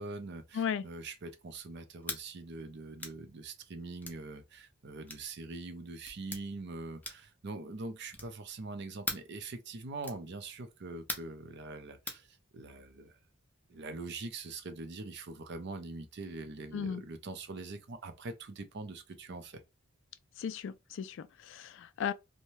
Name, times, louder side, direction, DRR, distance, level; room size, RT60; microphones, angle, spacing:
voice 1, 0.0-13.2 13.7-19.6, right 3 dB, 60° right, 0.5 m, -43 dB
sound 1, 2.0-2.2 3.0-3.2 4.0-4.2 5.1-5.3 6.0-6.4 7.0-7.3 8.1-8.4 9.0-9.3 10.0-10.2 11.1-11.4 12.1-12.2, left 2 dB, 10° left, 0.5 m, -40 dB
voice 2, 20.4-22.1, left 7 dB, 65° left, 0.3 m, -36 dB
2.7 x 2.2 x 3.0 m
head